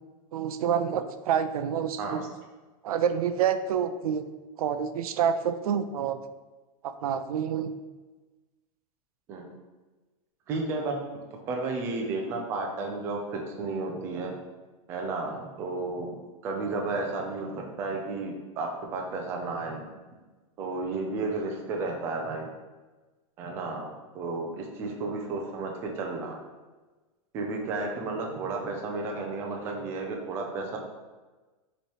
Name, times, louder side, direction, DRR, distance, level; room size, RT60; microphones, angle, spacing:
voice 1, 0.3-2.3 2.8-4.2 4.6-6.2 6.8-7.7, right 8 dB, 85° right, 10 dB, 0.4 m, -28 dB
voice 2, 10.5-11.0 11.5-14.3 14.9-16.2 16.4-19.8 20.6-22.5 23.4-26.3 27.3-30.8, right 3 dB, 15° right, 0 dB, 0.3 m, -32 dB
5.3 x 3.0 x 3.3 m, 1.2 s
supercardioid pair, 175°, 18 cm